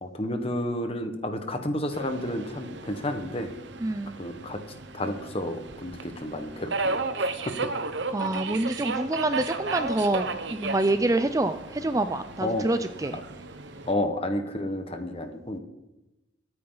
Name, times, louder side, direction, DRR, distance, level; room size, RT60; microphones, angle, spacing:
voice 1, 0.0-3.5 4.2-4.6 4.9-7.5 12.4-12.7 13.8-15.6, left 1 dB, 30° left, 7 dB, 1.4 m, -31 dB
Subway metro underground, 1.9-13.9, right 3 dB, 70° right, 0.9 m, -34 dB
voice 2, 3.8-4.2 7.4-7.5 8.1-13.2, right 2 dB, 20° right, 10 dB, 0.4 m, -27 dB
23.0 x 9.6 x 4.0 m, 0.98 s
head